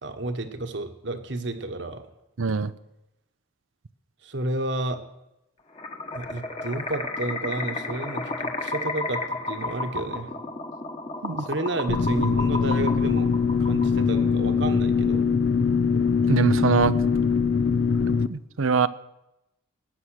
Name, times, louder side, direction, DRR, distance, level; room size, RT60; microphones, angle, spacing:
voice 1, 0.0-2.0 4.2-5.0 6.1-10.4 11.4-13.3 13.6-15.3, right 2 dB, 60° right, 7 dB, 1.4 m, -31 dB
voice 2, 2.4-2.7 11.2-11.5 16.3-16.9 18.3-18.9, right 4 dB, 85° right, 15 dB, 0.7 m, -22 dB
sound 1, 5.8-14.2, left 2 dB, 30° left, 1.4 m, -32 dB
sound 2, 11.9-18.3, left 5 dB, 60° left, 0.5 m, -22 dB
19.0 x 9.3 x 6.5 m, 0.91 s
head